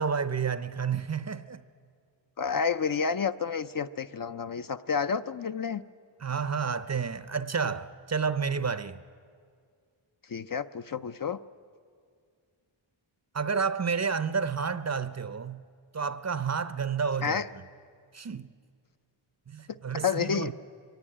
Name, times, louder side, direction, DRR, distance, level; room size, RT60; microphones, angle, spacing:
voice 1, 0.0-1.6 6.2-9.0 13.3-15.6 15.9-17.4 18.1-18.5 19.5-20.5, right 6 dB, 35° right, 0.6 m, -30 dB
voice 2, 2.4-5.8 10.3-11.4 17.2-17.5 20.0-20.5, left 6 dB, 45° left, 0.5 m, -30 dB
23.0 x 17.5 x 9.9 m
wide cardioid pair, 120°, 48 cm